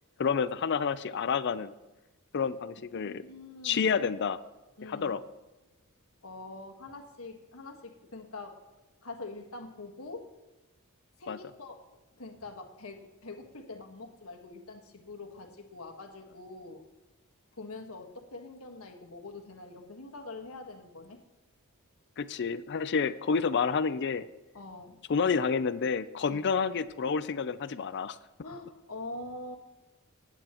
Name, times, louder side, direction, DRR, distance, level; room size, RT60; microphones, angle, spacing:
voice 1, 0.2-1.7 2.3-3.2 3.6-4.4 4.9-5.2 11.3-11.4 22.2-24.3 25.1-28.2, left 5 dB, 55° left, 14 dB, 0.5 m, -29 dB
voice 2, 2.9-3.9 4.8-5.2 6.2-8.6 9.0-10.3 11.2-11.8 12.2-16.8 17.5-21.2 24.5-25.0 26.3-26.4 28.4-29.6, left 2 dB, 80° left, 4 dB, 1.5 m, -44 dB
19.5 x 9.1 x 3.0 m, 1.1 s
head